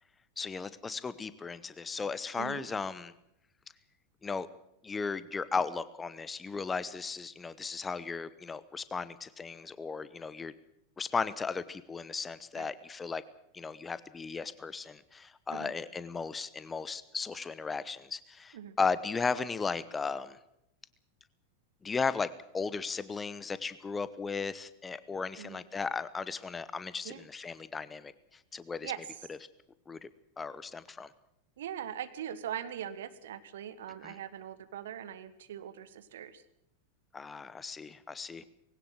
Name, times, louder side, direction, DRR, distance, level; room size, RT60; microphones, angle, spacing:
voice 1, 0.4-3.1 4.2-4.5 4.8-10.5 11.0-13.2 13.5-20.4 21.8-28.9 29.9-30.1 30.4-31.1 34.0-34.2 37.1-38.4, left 4 dB, 15° left, 16 dB, 0.9 m, -36 dB
voice 2, 2.4-2.7 12.5-12.7 15.5-15.7 18.5-18.8 25.4-25.6 27.0-27.3 28.8-29.0 31.6-36.4, right 10 dB, 60° right, 13 dB, 1.5 m, -41 dB
20.0 x 17.5 x 7.7 m, 0.78 s
figure-of-eight pair, 90°, 0 cm